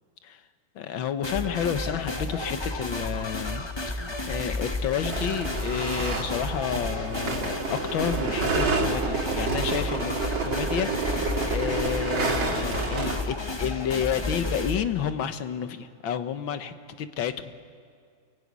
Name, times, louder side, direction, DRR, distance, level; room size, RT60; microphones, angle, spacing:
voice 1, 0.8-10.2 10.4-17.5, left 8 dB, 80° left, 10 dB, 1.9 m, -31 dB
sound 1, 1.2-14.8, left 2 dB, 20° left, 0.9 m, -32 dB
sound 2, 5.0-13.2, right 4 dB, 80° right, 3.4 m, -29 dB
27.5 x 22.5 x 9.6 m, 2.2 s
omnidirectional pair, 2.1 m